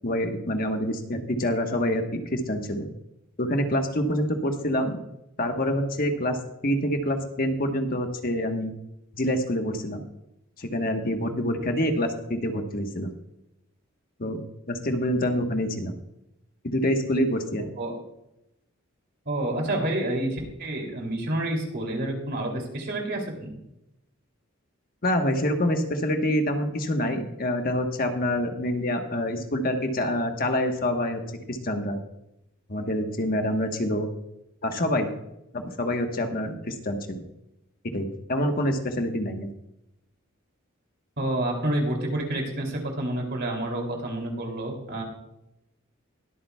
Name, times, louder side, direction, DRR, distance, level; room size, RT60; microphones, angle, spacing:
voice 1, 0.0-2.9 3.4-5.0 5.4-8.7 9.1-10.0 10.6-13.1 14.2-14.4 14.7-15.9 16.6-17.6 25.0-31.2 31.5-32.0 32.7-34.1 34.6-35.1 35.5-37.2 37.9-39.5, left 1 dB, 45° left, 4 dB, 1.2 m, -26 dB
voice 2, 19.2-23.6 41.2-45.0, right 1 dB, 55° right, 1 dB, 2.8 m, -29 dB
21.5 x 8.6 x 2.3 m, 0.85 s
head